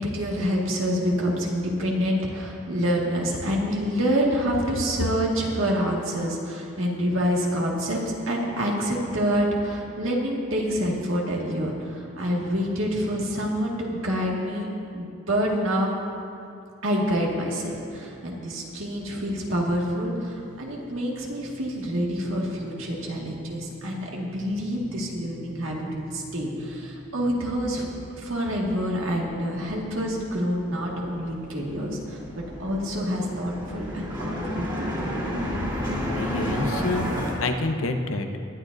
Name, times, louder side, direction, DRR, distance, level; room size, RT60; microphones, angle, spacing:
voice 1, 0.0-14.7 14.9-15.9 16.8-27.9 28.2-35.1, equal, 70° right, -3 dB, 1.9 m, -27 dB
sound 1, 24.5-24.6 24.7-26.0 26.2-37.3, equal, 20° right, 2.6 m, -32 dB
voice 2, 36.2-38.3, left 2 dB, 90° left, 6 dB, 0.8 m, -28 dB
20.0 x 11.0 x 2.7 m, 2.5 s
head